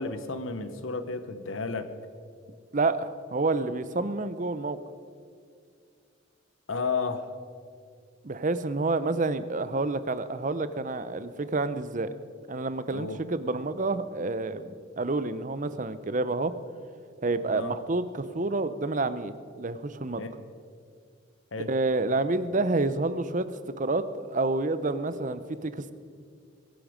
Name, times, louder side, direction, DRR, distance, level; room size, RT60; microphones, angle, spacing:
voice 1, 0.0-1.9 6.7-7.4 12.9-13.2 17.4-17.8 20.2-20.3 21.5-21.7, left 4 dB, 85° left, 10 dB, 1.1 m, -32 dB
voice 2, 2.7-4.8 8.2-12.1 12.5-16.5 17.2-20.2 21.6-23.5 23.8-25.9, right 3 dB, 40° right, 13 dB, 0.7 m, -29 dB
22.0 x 11.0 x 5.2 m, 2.2 s
head